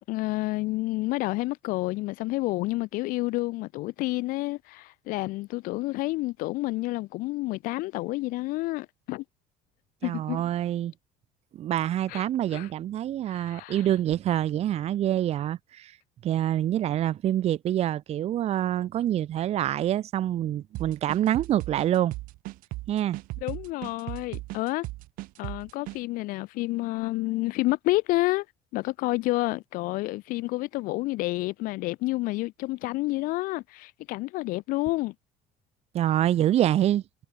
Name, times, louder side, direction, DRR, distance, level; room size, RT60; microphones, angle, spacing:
voice 1, 0.1-9.2 10.0-10.4 12.1-12.7 13.3-13.9 23.4-24.9 25.4-28.5 28.7-35.1, left 20 dB, 70° left, 2.2 m, -29 dB
voice 2, 10.0-10.9 11.5-16.0 16.2-22.1 22.9-23.2 35.9-37.0, right 12 dB, 45° right, 1.2 m, -26 dB
sound 1, 20.7-26.0, right 20 dB, 70° right, 1.8 m, -37 dB
cardioid pair, 135°, 15 cm